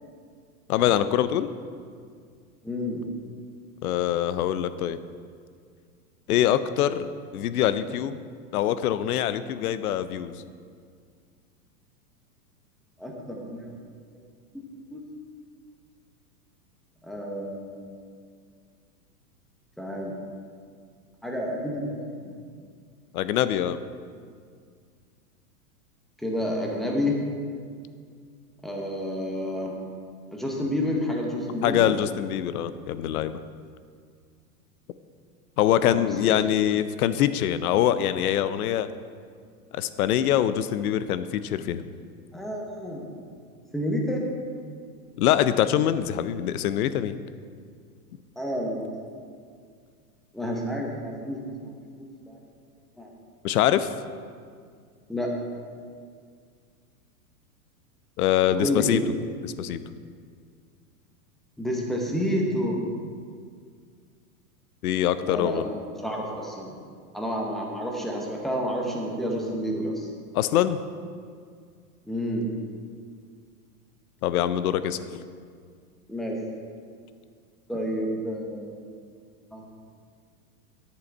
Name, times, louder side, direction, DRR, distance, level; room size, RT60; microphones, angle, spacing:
voice 1, 0.7-1.5 3.8-5.0 6.3-8.2 8.5-10.3 23.1-23.8 31.6-33.4 35.6-38.9 39.7-41.8 45.2-47.2 53.4-53.9 58.2-59.0 59.4-59.8 64.8-65.7 70.3-70.8 74.2-75.0, left 11 dB, 70° left, 13 dB, 0.7 m, -24 dB
voice 2, 2.6-3.0 13.0-13.7 14.5-14.6 14.9-15.0 17.0-17.9 19.8-20.1 21.2-22.3 26.2-27.2 28.6-29.7 30.3-31.9 35.8-36.5 42.3-43.1 43.7-44.2 48.4-48.9 50.3-51.8 52.3-52.4 53.0-53.1 55.1-55.3 58.6-59.0 61.6-62.8 65.2-65.7 66.0-66.7 67.1-70.1 72.1-72.5 76.1-76.4 77.7-78.8 79.5-79.6, equal, ahead, -1 dB, 0.8 m, -29 dB
10.5 x 7.0 x 4.6 m, 2.1 s
supercardioid pair, 145°, 46 cm